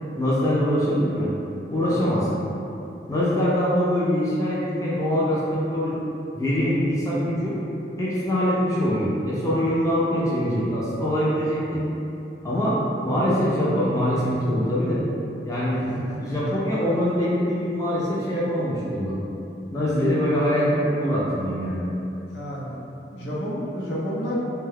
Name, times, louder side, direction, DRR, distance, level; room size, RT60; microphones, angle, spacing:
voice 1, 0.2-1.3 1.7-2.3 3.1-6.0 6.3-7.6 8.0-11.8 12.4-15.0 15.5-15.8 16.2-19.2 19.7-21.8, equal, 20° left, -8 dB, 0.4 m, -23 dB
voice 2, 15.7-16.2 20.0-20.1 22.3-22.8 23.1-24.4, equal, 75° left, -6 dB, 0.6 m, -31 dB
2.7 x 2.2 x 3.3 m, 2.8 s
head